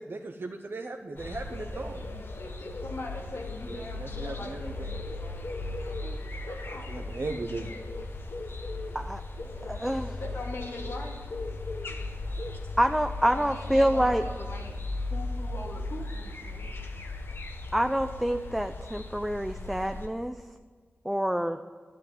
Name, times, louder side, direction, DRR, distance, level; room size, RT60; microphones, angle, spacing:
voice 1, 0.0-2.1 3.7-4.9 6.9-7.7, right 3 dB, 55° right, 4 dB, 0.8 m, -37 dB
sound 1, 1.2-20.1, left 2 dB, 60° left, 1.3 m, -37 dB
voice 2, 1.7-7.1 9.4-9.9 10.1-11.2 13.2-14.8 15.1-16.7, left 2 dB, 90° left, -2 dB, 2.5 m, -42 dB
voice 3, 9.7-10.1 12.8-14.2 17.7-20.4 21.0-21.6, equal, 5° right, 7 dB, 0.6 m, -26 dB
12.0 x 8.3 x 8.0 m, 1.5 s
cardioid pair, 50°, 4 cm